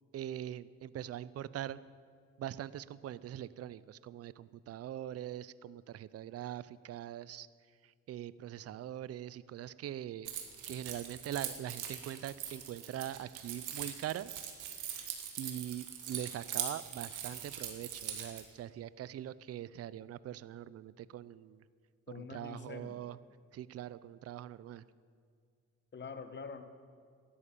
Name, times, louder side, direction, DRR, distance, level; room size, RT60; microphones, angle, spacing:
voice 1, 0.1-1.8 2.4-7.5 7.8-10.3 10.7-14.4 14.9-15.1 15.4-21.6 22.1-23.2 23.5-24.8, right 11 dB, 55° right, 18 dB, 0.5 m, -42 dB
Keys jangling, 10.3-18.4, right 9 dB, 85° right, 2.0 m, -42 dB
voice 2, 22.1-23.0 25.9-26.6, left 5 dB, 35° left, 9 dB, 1.3 m, -45 dB
13.5 x 11.5 x 8.9 m, 2.1 s
cardioid pair, 90°, 30 cm